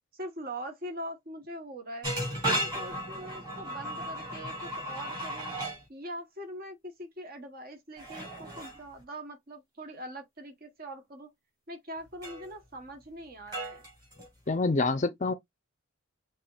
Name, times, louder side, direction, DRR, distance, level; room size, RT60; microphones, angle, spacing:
voice 1, 0.1-2.1 2.5-5.6 5.9-11.3 11.7-13.8, right 1 dB, 45° right, 1.1 m, -42 dB
sound 1, 2.0-5.8 8.0-8.8 12.2-12.5 13.5-14.5, right 1 dB, 20° right, 3.3 m, -35 dB
voice 2, 14.5-15.3, left 3 dB, 35° left, 0.5 m, -26 dB
5.9 x 3.4 x 2.4 m
head